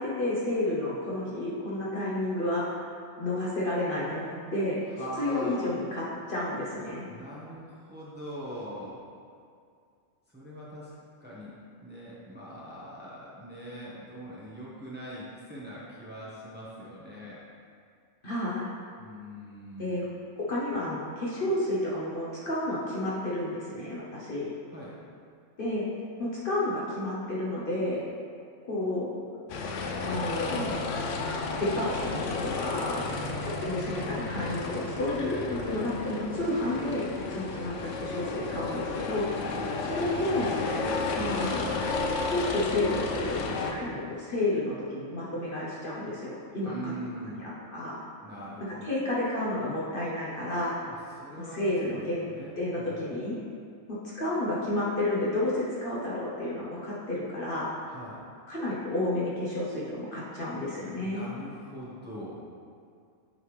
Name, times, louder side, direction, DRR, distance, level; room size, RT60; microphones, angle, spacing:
voice 1, 0.0-2.9 3.2-4.8 5.2-7.1 18.2-18.7 19.8-20.1 20.4-24.5 25.6-25.9 26.2-28.0 28.6-29.1 30.0-30.7 31.6-33.1 33.4-40.5 41.2-41.7 42.2-46.9 47.4-48.0 48.8-50.7 51.4-52.3 52.6-53.4 53.9-57.7 58.5-61.2, left 1 dB, 45° left, -7 dB, 1.0 m, -31 dB
voice 2, 5.0-5.6 7.1-9.0 10.3-10.9 11.2-11.5 11.8-17.4 19.0-20.1 24.7-25.0 33.0-33.4 39.5-39.7 46.6-47.5 48.2-49.0 50.9-51.7 52.2-52.9 57.9-58.2 61.0-62.4, equal, 10° right, -8 dB, 1.0 m, -42 dB
sound 1, 29.5-43.7, left 3 dB, 70° left, 0.9 m, -32 dB
8.7 x 3.4 x 3.2 m, 2.3 s
omnidirectional pair, 1.4 m